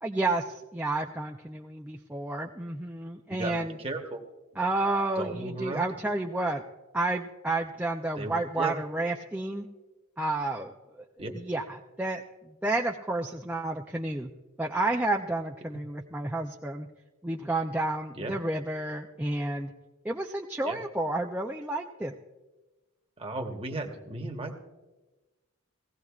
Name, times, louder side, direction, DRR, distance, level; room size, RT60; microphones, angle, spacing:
voice 1, 0.0-3.8 4.6-6.6 6.9-9.7 10.2-10.7 11.3-12.2 12.6-14.3 14.6-16.9 17.2-19.7 20.0-22.1, right 2 dB, 5° right, 1 dB, 0.4 m, -30 dB
voice 2, 3.3-4.2 5.2-5.9 8.2-8.8 11.2-11.3 18.1-18.3 20.6-20.8 23.2-24.6, right 2 dB, 25° right, 3 dB, 1.1 m, -35 dB
18.5 x 16.0 x 2.4 m, 1.2 s
head